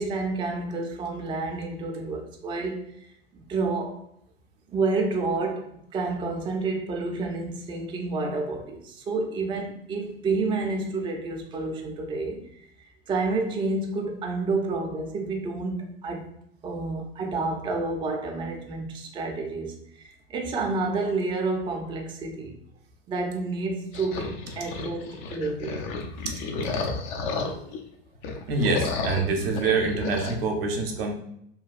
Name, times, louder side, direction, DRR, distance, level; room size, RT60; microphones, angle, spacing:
voice 1, 0.0-3.1 3.3-4.0 4.7-12.6 13.1-16.3 16.6-22.6 23.1-25.9 26.9-27.0, right 3 dB, 15° right, 1 dB, 0.4 m, -29 dB
sound 1, 23.9-27.8 28.2-30.4, left 4 dB, 55° left, 0.5 m, -32 dB
voice 2, 28.5-31.1, right 3 dB, 70° right, 3 dB, 0.6 m, -26 dB
2.8 x 2.2 x 2.4 m, 0.72 s
hypercardioid pair, 85°, 31 cm